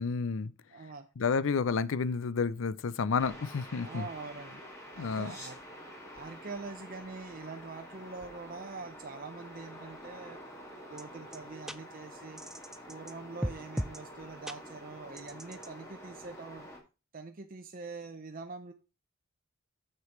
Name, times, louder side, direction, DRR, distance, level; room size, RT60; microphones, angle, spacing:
voice 1, 0.0-0.5 1.2-4.1 5.0-5.3, left 5 dB, 70° left, 0.5 m, -30 dB
voice 2, 0.7-1.1 3.8-4.6 4.9-5.6 6.1-10.4 10.9-12.4 12.9-16.7 17.1-18.7, right 4 dB, 45° right, 0.7 m, -44 dB
sound 1, 3.2-16.8, equal, 15° left, 2.3 m, -48 dB
sound 2, 11.0-11.1 11.3-11.4 11.7-11.8 12.4-13.1 13.4-14.0 14.5-14.6 15.2-15.7, equal, ahead, 0.4 m, -36 dB
6.8 x 6.7 x 4.4 m
head